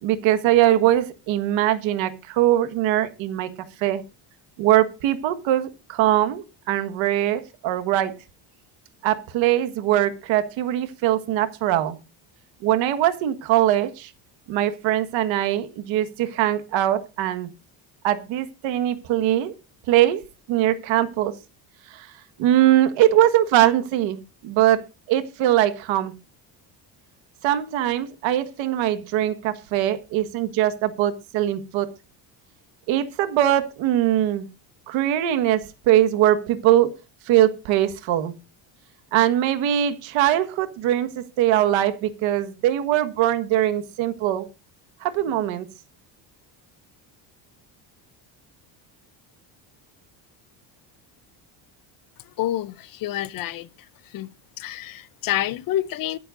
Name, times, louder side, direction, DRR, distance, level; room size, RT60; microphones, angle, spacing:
voice 1, 0.0-3.5 3.8-4.0 4.6-8.1 9.0-12.0 12.6-14.1 14.5-17.5 18.0-19.5 19.9-20.2 20.5-21.3 21.9-22.1 22.4-24.8 25.1-26.1 27.4-31.9 32.9-34.5 34.9-36.9 37.3-38.3 39.1-44.5 45.0-45.7, right 13 dB, 80° right, 1.6 m, -21 dB
voice 2, 52.4-53.7 54.0-56.2, left 13 dB, 50° left, 0.6 m, -28 dB
22.5 x 7.8 x 2.5 m
cardioid pair, 175°, 46 cm